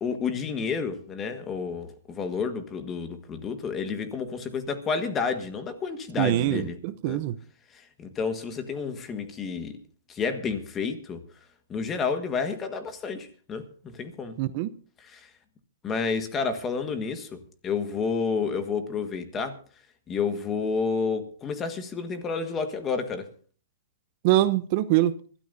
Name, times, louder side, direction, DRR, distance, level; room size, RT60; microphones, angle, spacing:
voice 1, 0.0-6.8 7.1-7.2 7.7-9.8 10.1-11.2 11.7-14.4 15.0-15.3 15.8-19.6 20.1-23.3, left 5 dB, 20° left, 1.6 m, -30 dB
voice 2, 6.2-7.4 14.4-14.7 24.2-25.1, right 15 dB, 40° right, 0.7 m, -23 dB
25.0 x 13.0 x 2.7 m
hypercardioid pair, 145°, 0 cm